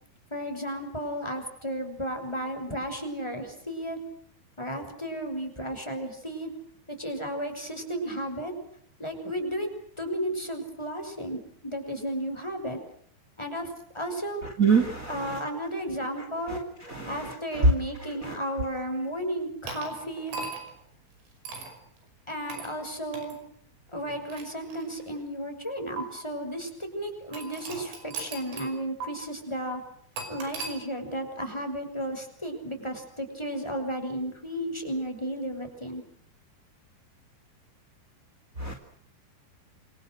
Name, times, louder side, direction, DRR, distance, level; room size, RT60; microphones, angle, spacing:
voice 1, 0.3-4.0 4.6-6.5 6.9-8.5 9.0-9.7 10.0-12.8 13.4-13.7 13.9-14.4 15.1-16.6 17.1-20.3 22.3-23.4 23.9-29.8 30.3-36.0, right 1 dB, 5° left, 4 dB, 5.8 m, -33 dB
voice 2, 14.6-15.2 16.9-17.1 38.6-38.7, right 7 dB, 25° right, 4 dB, 2.0 m, -23 dB
sound 1, 19.7-20.8 21.5-21.8 22.5-22.7 23.1-23.4 24.1-25.2 26.0-26.1 27.3-28.8 29.0-29.1 30.2-30.8, right 4 dB, 80° right, 8.0 m, -38 dB
28.5 x 26.0 x 6.4 m, 0.63 s
omnidirectional pair, 5.5 m